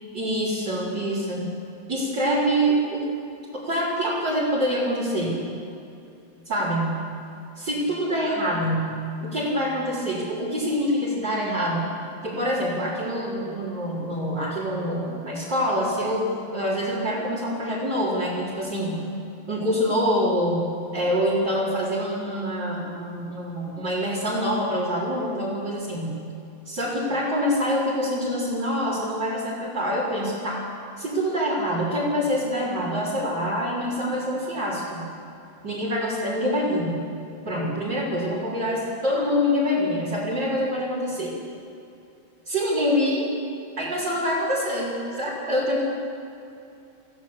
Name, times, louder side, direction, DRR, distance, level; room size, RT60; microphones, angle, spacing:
voice 1, 0.1-1.4 1.9-3.0 3.5-5.4 6.4-7.0 7.6-11.8 12.2-19.0 19.5-26.2 26.6-30.6 31.0-35.1 35.6-37.0 37.4-41.3 42.5-43.3 43.8-45.9, equal, 55° right, -8 dB, 5.1 m, -25 dB
28.5 x 15.5 x 8.2 m, 2.7 s
omnidirectional pair, 2.2 m